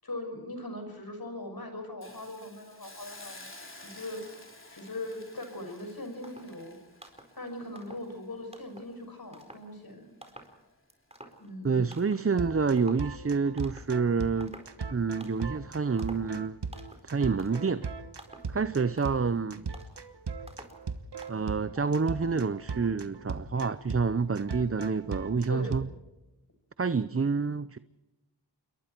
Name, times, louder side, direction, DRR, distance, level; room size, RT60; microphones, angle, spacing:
voice 1, 0.0-3.5 3.7-4.2 4.7-6.8 7.4-10.1 11.4-12.0 25.5-25.8, left 1 dB, 60° left, 6.1 m, -40 dB
Hiss, 2.0-9.0 9.4-9.6, left 1 dB, 30° left, 3.8 m, -51 dB
sound 1, 5.8-5.9 6.2-6.6 7.0-7.4 7.7-8.2 8.5-9.0 9.3-9.7 10.2-10.6 10.9-11.6 11.9-12.3 12.8-13.1 13.6-14.0 14.4-14.8 15.2-15.6 16.0-16.3 16.7-17.1 17.4-17.7 18.2-18.6 18.9-19.3 19.7-20.0 20.5-20.8 21.2-21.4, right 1 dB, 15° right, 4.4 m, -50 dB
voice 2, 11.6-14.6 14.9-16.6 17.0-17.9 18.5-19.7 21.3-25.9 26.8-27.8, right 5 dB, 35° right, 0.7 m, -28 dB
sound 2, 12.4-25.8, right 5 dB, 75° right, 1.3 m, -38 dB
28.0 x 22.5 x 4.6 m
wide cardioid pair, 45°, 42 cm